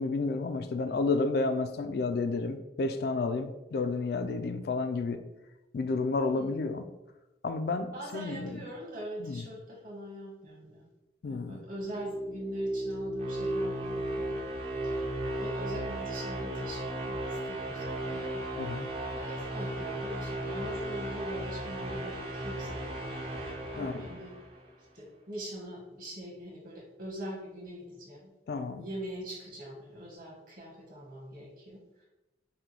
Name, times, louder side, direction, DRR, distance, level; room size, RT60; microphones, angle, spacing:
voice 1, 0.0-5.2 5.7-6.9 7.4-8.6 9.2-9.4 11.2-11.6 18.6-18.9 23.8-24.1 28.5-28.8, left 3 dB, 55° left, 8 dB, 0.3 m, -31 dB
voice 2, 7.9-10.9 11.2-14.5 14.8-18.8 19.1-23.2 23.7-24.4 24.9-28.3 28.7-32.0, equal, 50° right, -4 dB, 1.5 m, -43 dB
sound 1, 11.6-24.7, right 1 dB, 30° right, 0.6 m, -35 dB
5.8 x 2.2 x 3.3 m, 0.97 s
head